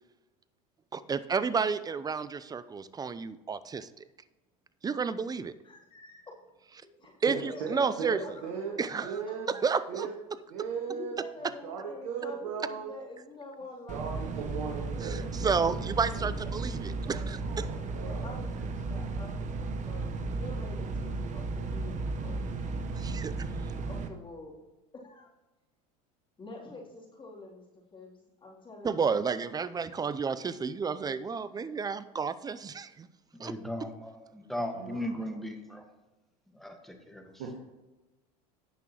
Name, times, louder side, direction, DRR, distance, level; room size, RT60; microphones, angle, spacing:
voice 1, 0.9-4.0 4.8-5.5 7.2-8.2 8.8-9.1 9.5-10.1 15.0-17.7 23.0-23.7 28.8-33.1 33.4-33.5, right 5 dB, 20° right, 15 dB, 0.5 m, -31 dB
voice 2, 5.6-6.2 6.8-7.1 7.5-8.5 9.2-9.3 10.9-17.4 18.2-22.8 23.8-24.5 24.9-25.3 26.4-29.1 29.6-29.7, left 2 dB, 25° left, -4 dB, 3.2 m, -47 dB
voice 3, 7.3-8.7 9.0-9.5 9.9-10.1 10.5-11.1 11.6-12.9 13.9-15.6 17.4-18.3 34.7-35.3 37.4-37.6, right 6 dB, 70° right, -1 dB, 1.8 m, -37 dB
sound 1, 13.9-24.1, right 3 dB, 40° right, 1.0 m, -34 dB
voice 4, 33.3-35.8 36.5-37.3, equal, ahead, 4 dB, 1.5 m, -37 dB
17.5 x 6.0 x 3.0 m, 1.1 s
hypercardioid pair, 85°, 19 cm